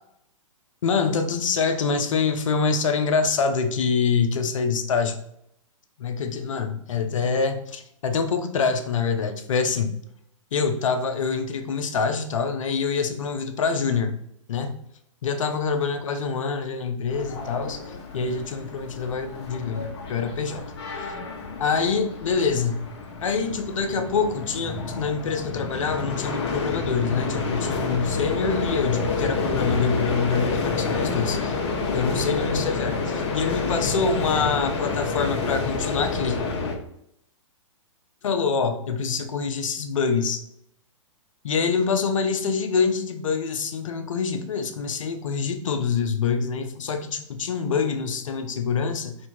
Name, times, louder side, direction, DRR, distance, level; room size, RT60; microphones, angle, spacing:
voice 1, 0.8-5.2 6.0-10.0 10.5-14.1 14.5-14.7 15.2-20.7 21.6-22.8 23.2-31.5 31.9-36.4 38.2-40.4 41.4-49.2, left 5 dB, 75° left, 8 dB, 0.7 m, -25 dB
sound 1, 17.1-36.7, left 4 dB, 55° left, 1.1 m, -29 dB
4.4 x 2.7 x 4.4 m, 0.73 s
hypercardioid pair, 125°, 17 cm